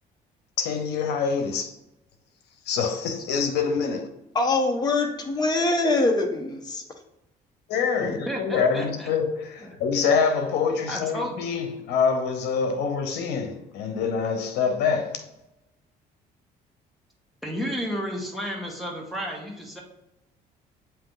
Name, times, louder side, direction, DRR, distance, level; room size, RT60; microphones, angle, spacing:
voice 1, 0.6-1.7 2.7-4.1 7.7-15.2, left 5 dB, 85° left, 0.9 m, -25 dB
voice 2, 4.3-6.8, left 2 dB, 25° left, 1.0 m, -23 dB
voice 3, 8.0-9.1 9.6-9.8 10.9-11.6 17.4-19.8, equal, ahead, 1.6 m, -32 dB
8.4 x 2.9 x 3.8 m
cardioid pair, 110°, 17 cm